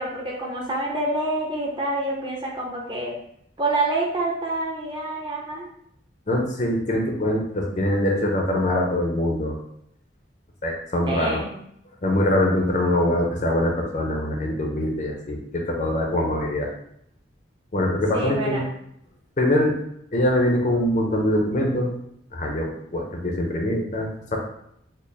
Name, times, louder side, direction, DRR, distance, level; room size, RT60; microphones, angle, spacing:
voice 1, 0.0-3.1 3.6-5.7 11.1-11.5 18.1-18.6, right 2 dB, 25° right, -2 dB, 0.7 m, -27 dB
voice 2, 6.3-9.6 10.6-11.4 12.0-16.7 17.7-18.6 19.4-19.8 20.1-21.9 22.3-24.4, left 1 dB, 40° left, 1 dB, 0.5 m, -23 dB
4.3 x 2.1 x 3.3 m, 0.72 s
head